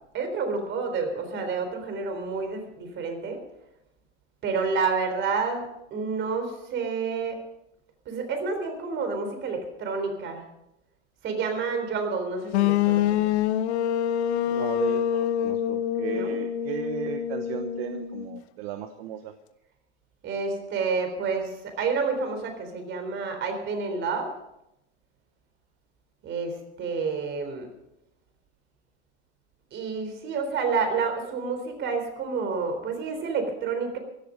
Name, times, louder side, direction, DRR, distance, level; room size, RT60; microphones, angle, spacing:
voice 1, 0.1-3.4 4.4-7.4 8.1-10.4 11.2-13.2 16.1-16.4 20.2-24.3 26.2-27.7 29.7-34.0, right 4 dB, 35° right, 7 dB, 3.9 m, -29 dB
sound 1, 12.5-18.4, left 10 dB, 70° left, 1.1 m, -26 dB
voice 2, 14.5-19.3, right 11 dB, 60° right, 8 dB, 1.1 m, -36 dB
17.0 x 12.0 x 5.2 m, 0.86 s
hypercardioid pair, 125°, 34 cm